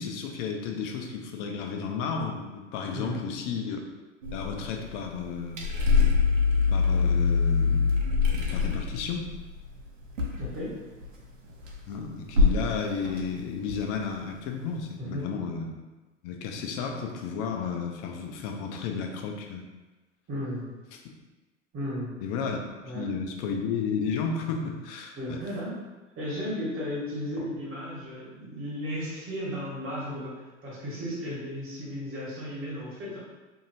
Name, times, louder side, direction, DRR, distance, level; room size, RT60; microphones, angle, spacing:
voice 1, 0.0-3.8 4.3-5.6 6.7-7.9 8.3-9.3 11.9-15.7 16.2-19.6 20.9-21.0 22.2-22.6 22.9-25.4, left 5 dB, 45° left, 3 dB, 0.5 m, -32 dB
sound 1, 4.2-11.2 11.4-11.9 12.3-12.8 13.0-14.3, left 5 dB, 80° right, 0.7 m, -25 dB
voice 2, 10.4-10.7 15.0-15.3 20.3-20.7 21.7-22.2 22.8-23.0 25.1-25.8 26.2-33.2, equal, 35° right, -6 dB, 1.3 m, -34 dB
2.7 x 2.7 x 2.5 m, 1.2 s
hypercardioid pair, 90°, 38 cm